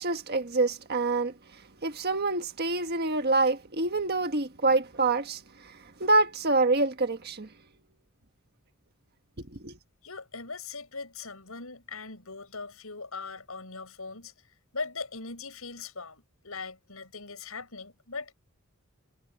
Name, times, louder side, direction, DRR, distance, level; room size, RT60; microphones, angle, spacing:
voice 1, 0.0-1.3 1.8-5.4 6.0-7.5 9.6-9.8, right 3 dB, 50° right, 1.5 m, -26 dB
voice 2, 10.0-14.3 14.7-18.3, left 4 dB, 80° left, 7.4 m, -40 dB
head